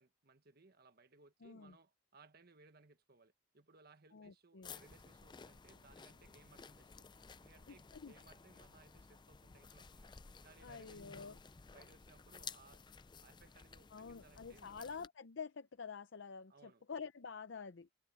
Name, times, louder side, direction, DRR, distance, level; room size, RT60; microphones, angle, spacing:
voice 1, 0.0-7.1 7.4-10.1 10.4-11.4 11.7-12.9 13.2-14.9 16.5-16.8, right 3 dB, 55° right, 1.4 m, -65 dB
voice 2, 1.4-1.7 4.1-4.7 7.7-8.1 10.6-11.4 13.9-17.9, left 5 dB, 70° left, 0.6 m, -48 dB
sound 1, 4.6-15.1, left 5 dB, 25° left, 0.5 m, -55 dB
head